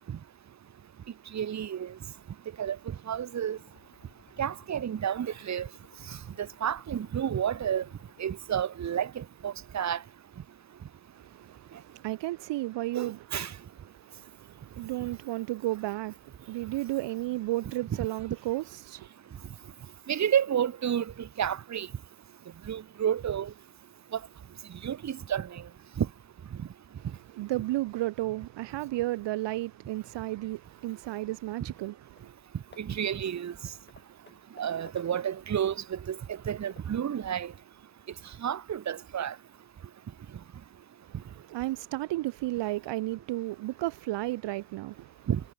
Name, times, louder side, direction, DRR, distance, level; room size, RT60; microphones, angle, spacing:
voice 1, 1.3-1.9 2.6-3.6 4.4-5.7 6.1-7.8 8.2-10.0 12.9-13.5 20.1-21.9 22.7-23.5 24.1-24.2 24.8-25.6 26.0-26.1 26.6-26.7 32.8-33.5 34.6-37.5 38.4-39.3 45.3-45.4, right 9 dB, 40° right, 1.2 m, -30 dB
sound 1, 3.3-8.5, left 6 dB, 40° left, 6.3 m, -61 dB
voice 2, 11.2-13.3 13.9-19.1 27.0-27.1 27.3-32.3 41.0-41.1 41.5-45.3, right 17 dB, 70° right, 0.9 m, -33 dB
Hammer / Wood, 32.2-32.4 32.7-35.6 36.1-37.1, left 4 dB, 25° left, 5.4 m, -58 dB
cardioid pair, 85°, 43 cm